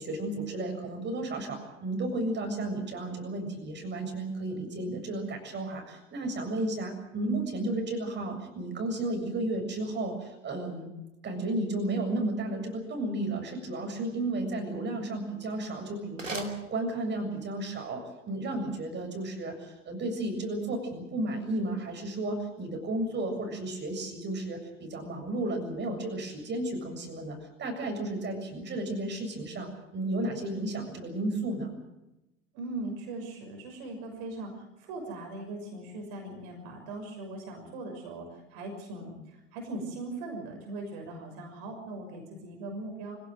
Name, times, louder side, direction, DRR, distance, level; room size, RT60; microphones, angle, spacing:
voice 1, 0.0-10.9 11.2-31.7, right 2 dB, 30° right, 4 dB, 7.4 m, -33 dB
sound 1, 15.4-17.4, right 3 dB, 90° right, 2.7 m, -43 dB
voice 2, 32.5-43.2, right 2 dB, 55° right, 2 dB, 6.3 m, -40 dB
25.5 x 17.0 x 7.9 m, 0.95 s
figure-of-eight pair, 80°, 37 cm